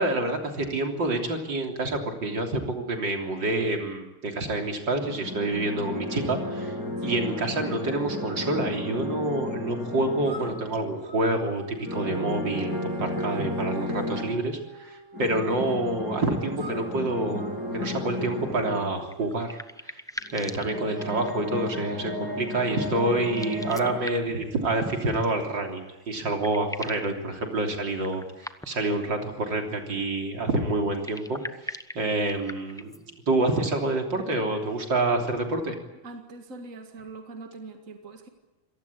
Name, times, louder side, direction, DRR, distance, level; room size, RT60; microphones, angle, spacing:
voice 1, 0.0-6.7 7.0-19.6 19.9-20.0 20.3-32.9 33.3-35.8, right 2 dB, 70° right, 3 dB, 4.0 m, -28 dB
sound 1, 4.9-11.0 11.8-14.4 15.1-18.9 20.2-24.0, left 2 dB, 50° left, 7.6 m, -33 dB
voice 2, 7.0-7.3 36.0-38.3, right 3 dB, 45° right, 5 dB, 2.4 m, -43 dB
sound 2, 10.2-19.4, right 3 dB, 15° right, 2.2 m, -46 dB
sound 3, 19.0-21.6 23.2-24.5 25.8-25.9 26.2-27.1 28.0-28.9 30.9-33.0, equal, 5° left, 0.5 m, -41 dB
27.0 x 18.0 x 8.6 m, 1.0 s
omnidirectional pair, 2.0 m